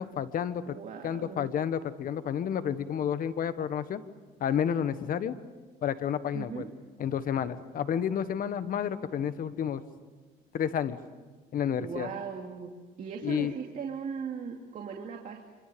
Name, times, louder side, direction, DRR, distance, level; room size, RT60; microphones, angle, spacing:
voice 1, 0.0-0.8 1.0-4.0 4.4-5.3 5.8-6.6 7.0-9.8 10.5-11.0 11.5-12.1 13.2-13.5, left 8 dB, 55° left, 12 dB, 1.5 m, -30 dB
voice 2, 0.7-1.5 6.3-6.7 11.8-15.4, right 6 dB, 50° right, 2 dB, 2.6 m, -38 dB
27.0 x 24.5 x 7.0 m, 1.4 s
cardioid pair, 110°, 17 cm